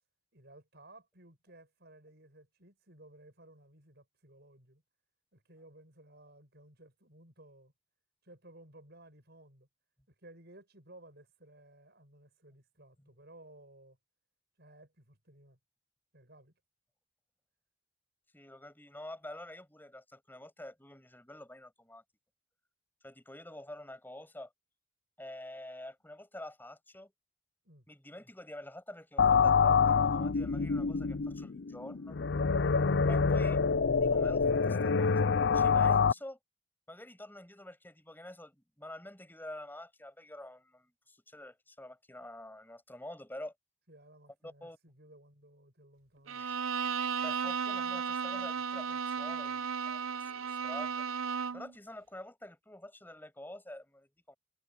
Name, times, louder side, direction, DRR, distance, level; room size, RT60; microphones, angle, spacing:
voice 1, 0.3-4.8 5.3-7.7 8.2-9.7 10.1-14.0 14.6-15.6 16.1-16.5 27.6-27.8 43.9-46.5, right 1 dB, 55° right, 7.9 m, -57 dB
voice 2, 18.3-22.0 23.0-24.5 25.2-27.1 27.9-32.2 33.1-33.6 34.0-36.4 36.9-43.5 44.4-44.8 46.4-46.6 47.0-51.1 51.5-54.4, left 1 dB, 10° left, 7.3 m, -48 dB
sound 1, 29.2-36.1, left 5 dB, 55° left, 0.5 m, -26 dB
Bowed string instrument, 46.3-51.7, right 6 dB, 85° right, 0.8 m, -34 dB
head